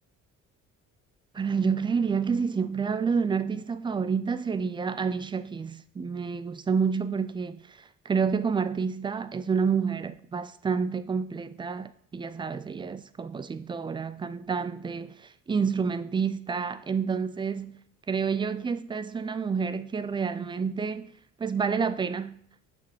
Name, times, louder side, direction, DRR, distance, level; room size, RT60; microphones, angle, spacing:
voice 1, 1.3-17.8 18.1-21.1 21.4-22.4, right 5 dB, 15° right, 0.4 m, -29 dB
10.0 x 5.9 x 3.1 m
figure-of-eight pair, 50°, 40 cm